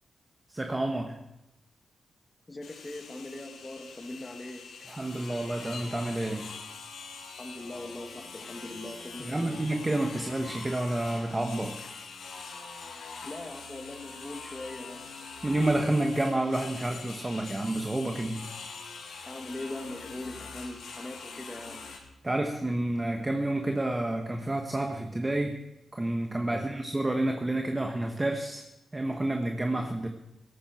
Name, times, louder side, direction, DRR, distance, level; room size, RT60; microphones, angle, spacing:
voice 1, 0.5-1.2 4.9-6.5 9.2-11.9 15.4-18.5 22.2-25.6 25.9-28.6 28.9-30.1, right 1 dB, 20° right, 4 dB, 1.3 m, -29 dB
voice 2, 2.5-4.7 7.4-9.7 13.2-15.2 19.3-21.9 26.5-26.8, left 2 dB, 25° left, 4 dB, 2.3 m, -41 dB
sound 1, 2.6-22.0, left 4 dB, 85° left, 2.8 m, -44 dB
16.5 x 13.5 x 4.5 m, 0.89 s
cardioid pair, 75°, 0 cm